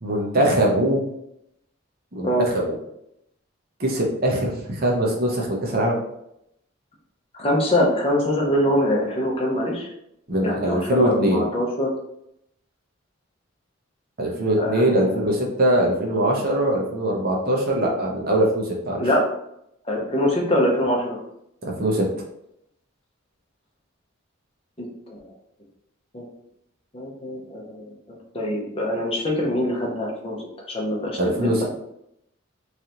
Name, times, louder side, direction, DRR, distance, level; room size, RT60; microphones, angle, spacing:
voice 1, 0.0-1.0 2.1-2.7 3.8-6.0 10.3-11.4 14.2-19.1 21.6-22.1 31.2-31.6, right 1 dB, 45° right, -1 dB, 0.8 m, -22 dB
voice 2, 7.3-9.9 10.4-11.9 14.6-15.2 19.0-19.2 19.9-21.2 25.2-25.3 26.1-26.2 26.9-31.6, left 1 dB, 25° left, -2 dB, 0.8 m, -24 dB
3.8 x 3.3 x 2.9 m, 0.78 s
head